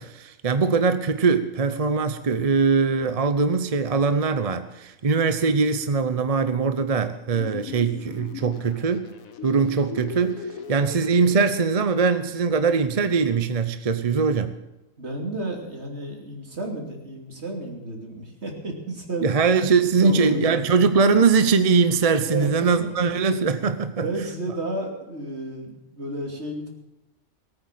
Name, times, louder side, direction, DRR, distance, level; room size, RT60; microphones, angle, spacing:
voice 1, 0.0-9.1 9.4-14.6 19.2-24.1, right 5 dB, 35° right, 10 dB, 0.7 m, -21 dB
sound 1, 7.3-11.3, left 7 dB, 85° left, 1.5 m, -38 dB
voice 2, 15.0-19.3 19.8-20.8 22.1-22.9 24.0-26.7, right 2 dB, 55° right, 1 dB, 3.3 m, -32 dB
19.0 x 9.0 x 7.6 m, 0.98 s
omnidirectional pair, 1.4 m